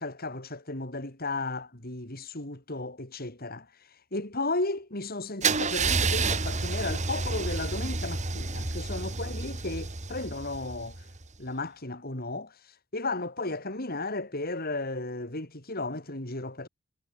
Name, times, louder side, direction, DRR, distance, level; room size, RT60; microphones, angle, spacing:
voice 1, 0.0-3.7 4.1-11.0 11.4-12.6 12.9-16.7, left 2 dB, 45° left, 4.1 m, -34 dB
Car / Engine starting / Idling, 5.4-11.3, right 4 dB, 35° right, 1.9 m, -30 dB
head